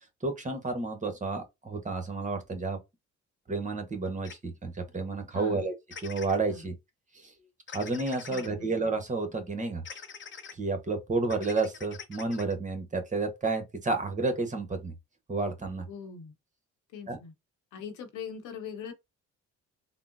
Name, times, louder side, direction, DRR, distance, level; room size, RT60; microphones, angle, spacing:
voice 1, 0.2-2.8 3.5-5.7 6.0-6.7 7.1-7.3 7.7-9.8 10.5-14.9 15.3-15.9 17.1-17.2, right 3 dB, 25° right, 0.9 m, -31 dB
sound 1, 4.2-4.3 5.9-6.4 7.7-8.5 9.8-10.5 11.2-12.5, left 6 dB, 40° left, 0.7 m, -44 dB
voice 2, 5.3-5.7 6.5-6.6 8.3-8.7 15.9-16.3 16.9-17.3 17.7-18.9, left 6 dB, 90° left, 0.9 m, -41 dB
3.6 x 2.0 x 2.4 m
cardioid pair, 90°, 30 cm